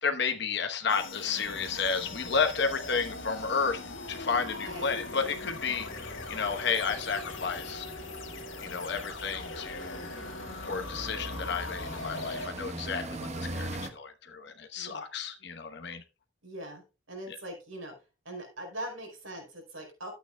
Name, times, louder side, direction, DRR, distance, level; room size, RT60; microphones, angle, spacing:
voice 1, 0.0-3.8 4.1-7.9 8.6-10.1 10.6-16.0 17.3-17.4, left 5 dB, 55° left, 5 dB, 1.0 m, -32 dB
sound 1, 0.9-12.5, left 3 dB, 75° left, 2.2 m, -41 dB
sound 2, 1.4-13.9, right 1 dB, 35° right, 1.0 m, -43 dB
voice 2, 16.4-16.8 17.1-18.0 18.2-20.1, right 1 dB, 85° right, 2 dB, 4.9 m, -41 dB
12.5 x 8.8 x 2.3 m, 0.29 s
head